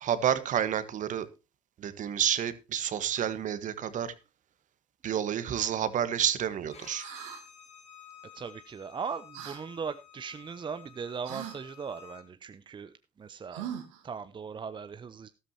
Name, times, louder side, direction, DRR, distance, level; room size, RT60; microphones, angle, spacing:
voice 1, 0.0-1.3 1.8-4.1 5.0-7.0, right 9 dB, 50° right, 1.3 m, -29 dB
Bowed string instrument, 6.7-12.2, left 8 dB, 45° left, 4.1 m, -52 dB
sound 1, 7.0-7.4 9.3-9.6 11.2-11.6 13.5-14.0, right 10 dB, 85° right, 2.1 m, -40 dB
voice 2, 8.3-13.7 14.0-15.3, right 6 dB, 30° right, 0.8 m, -39 dB
13.5 x 12.5 x 2.8 m
supercardioid pair, 75°, 16 cm